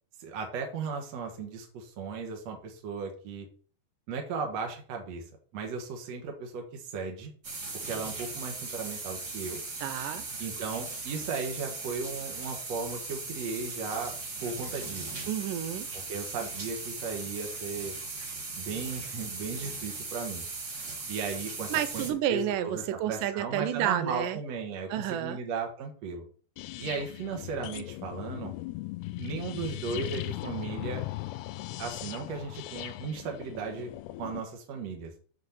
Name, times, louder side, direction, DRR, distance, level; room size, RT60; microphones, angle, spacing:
voice 1, 0.2-3.5 4.1-5.2 5.5-7.3 7.9-9.6 10.4-14.1 14.4-15.2 15.9-18.0 18.6-20.5 21.1-22.0 22.3-26.2 26.8-28.5 29.2-31.0 31.8-33.9 34.2-35.1, right 5 dB, 55° right, 2.2 m, -36 dB
sound 1, 7.4-22.1, right 3 dB, 35° right, 1.8 m, -38 dB
voice 2, 9.8-10.3 15.3-15.9 21.7-24.4 24.9-25.4, right 11 dB, 75° right, 2.1 m, -30 dB
sound 2, 26.6-34.4, left 17 dB, 90° left, 2.6 m, -38 dB
8.3 x 4.8 x 7.2 m
omnidirectional pair, 4.6 m